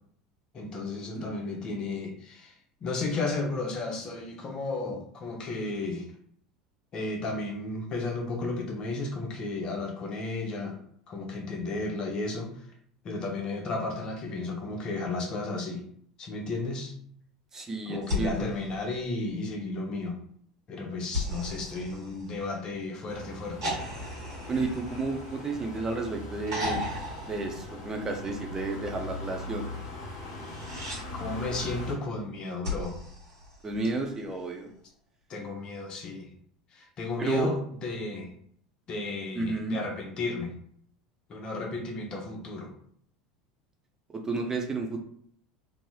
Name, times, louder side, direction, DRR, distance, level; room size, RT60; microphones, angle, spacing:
voice 1, 0.5-2.6 2.8-6.1 6.9-10.8 11.1-12.6 13.0-15.8 16.2-16.9 17.9-20.2 20.7-23.7 31.1-33.0 35.3-36.3 36.7-38.3 38.9-40.5 41.3-42.7, left 3 dB, 35° left, 1 dB, 0.7 m, -33 dB
voice 2, 1.1-1.7 17.5-18.5 24.5-26.8 27.3-29.6 33.6-34.7 37.2-37.5 39.3-39.8 44.1-45.0, right 3 dB, 20° right, 3 dB, 0.5 m, -31 dB
sound 1, 18.0-19.6 21.1-22.8 23.6-25.9 26.5-28.3 30.3-31.0 32.6-34.1 35.6-35.7, left 1 dB, 65° right, 1.2 m, -36 dB
sound 2, 23.1-31.9, left 1 dB, 60° left, 1.1 m, -40 dB
3.1 x 2.6 x 2.2 m, 0.63 s
figure-of-eight pair, 75°, 2 cm